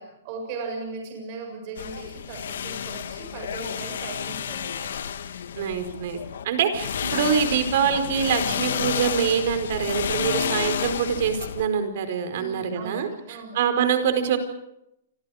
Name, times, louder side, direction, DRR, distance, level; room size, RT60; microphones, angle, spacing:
voice 1, 0.0-4.9 10.3-10.4 12.3-13.6, right 3 dB, 35° right, 2 dB, 7.2 m, -37 dB
sound 1, 1.8-6.4 6.7-11.7, left 8 dB, 75° left, 2.1 m, -30 dB
voice 2, 5.6-6.2 6.4-14.4, right 7 dB, 50° right, 8 dB, 4.6 m, -25 dB
29.0 x 25.5 x 5.1 m, 0.82 s
hypercardioid pair, 170°, 0 cm